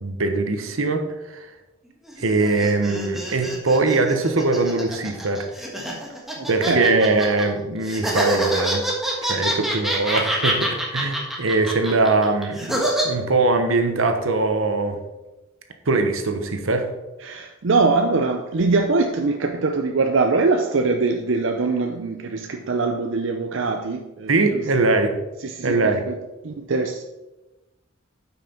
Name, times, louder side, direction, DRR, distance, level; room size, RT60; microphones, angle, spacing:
voice 1, 0.0-1.5 2.2-5.5 6.5-8.8 9.2-15.0 15.9-16.9 24.3-25.1 25.6-26.0, right 3 dB, 85° right, 6 dB, 1.1 m, -21 dB
sound 1, 2.1-7.4 7.8-13.0, right 1 dB, ahead, 1.4 m, -26 dB
voice 2, 6.4-7.1 9.5-9.7 17.2-25.0 25.4-27.0, right 3 dB, 65° right, 4 dB, 0.6 m, -23 dB
9.1 x 5.9 x 4.4 m, 1.0 s
head